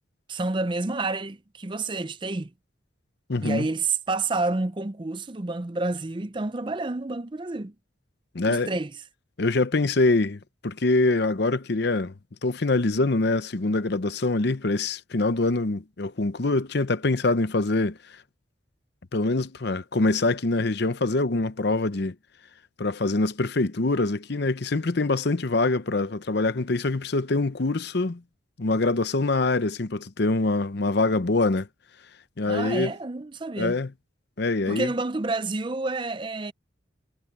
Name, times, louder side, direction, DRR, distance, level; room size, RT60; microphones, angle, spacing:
voice 1, 0.3-2.5 3.4-7.7 8.5-8.9 32.5-33.8 34.7-36.5, right 3 dB, 25° right, 0.5 m, -29 dB
voice 2, 3.3-3.7 8.3-8.8 9.4-12.1 12.4-18.0 19.1-22.1 22.8-28.2 28.6-31.7 32.4-32.9 33.6-33.9 34.4-34.9, left 2 dB, 55° left, 0.8 m, -24 dB
head